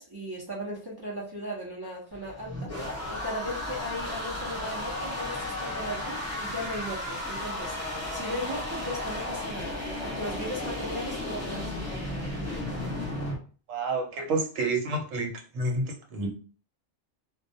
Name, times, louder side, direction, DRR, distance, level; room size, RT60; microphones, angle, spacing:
voice 1, 0.0-12.2, equal, 30° right, -5 dB, 0.4 m, -37 dB
sound 1, 2.1-13.4, left 1 dB, 15° left, 0.8 m, -34 dB
voice 2, 13.7-16.3, right 2 dB, 85° right, 2 dB, 1.0 m, -29 dB
2.2 x 2.2 x 2.6 m, 0.39 s
omnidirectional pair, 1.3 m